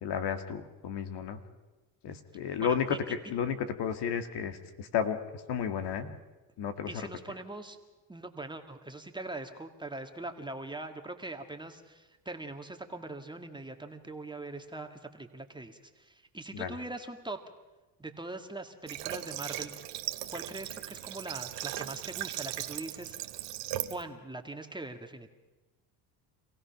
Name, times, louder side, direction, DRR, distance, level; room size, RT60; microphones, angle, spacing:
voice 1, 0.0-1.4 2.0-5.2 5.5-6.1 6.6-6.9 16.5-16.8, left 7 dB, 65° left, 8 dB, 1.9 m, -32 dB
voice 2, 2.6-3.0 6.9-7.8 8.1-17.4 18.0-19.7 20.3-23.2 23.9-25.3, right 2 dB, 10° right, 5 dB, 1.8 m, -42 dB
Water / Water tap faucet, 18.9-24.0, right 14 dB, 75° right, 1.3 m, -38 dB
26.5 x 17.0 x 5.9 m, 1.1 s
supercardioid pair, 85°, 43 cm